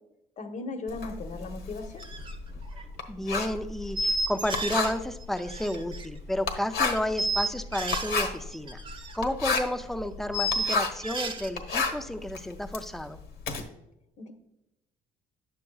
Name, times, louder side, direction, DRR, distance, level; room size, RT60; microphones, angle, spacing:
voice 1, 0.4-2.0 14.2-14.3, left 3 dB, 45° left, 6 dB, 1.0 m, -37 dB
Writing, 0.9-11.1 11.4-13.6, left 4 dB, 70° left, 1.1 m, -32 dB
sound 1, 2.0-2.3 2.6-2.8 4.0-4.9 5.2-6.1 7.0-8.2 8.5-9.2 9.4-9.5 10.3-11.5, right 1 dB, 30° right, 0.7 m, -31 dB
voice 2, 3.1-8.8 9.1-13.2, left 1 dB, ahead, 9 dB, 0.4 m, -32 dB
9.5 x 6.6 x 2.3 m, 0.88 s
cardioid pair, 110°, 17 cm